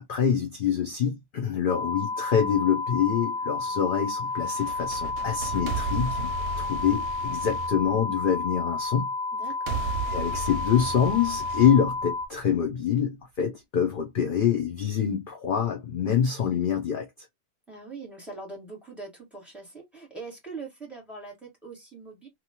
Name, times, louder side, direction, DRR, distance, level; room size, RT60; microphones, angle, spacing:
voice 1, 0.1-6.3 6.6-9.1 10.1-17.1, left 8 dB, 50° left, 0.6 m, -25 dB
sound 1, 1.7-12.3, left 3 dB, 75° left, 1.0 m, -31 dB
sound 2, 4.4-8.5 9.7-12.5, right 5 dB, 70° right, 0.9 m, -35 dB
voice 2, 9.3-9.9 17.7-22.3, right 3 dB, ahead, 1.6 m, -42 dB
2.9 x 2.4 x 2.8 m
omnidirectional pair, 1.5 m